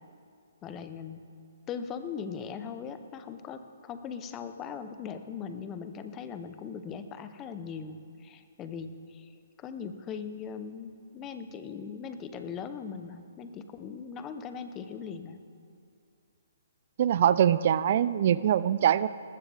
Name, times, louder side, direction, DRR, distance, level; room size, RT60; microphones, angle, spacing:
voice 1, 0.6-1.2 1.7-9.3 9.6-15.4, left 6 dB, 20° left, 9 dB, 0.9 m, -40 dB
voice 2, 17.0-19.1, right 10 dB, 50° right, 16 dB, 0.4 m, -23 dB
19.5 x 14.5 x 3.5 m, 2.4 s
hypercardioid pair, 140°, 0 cm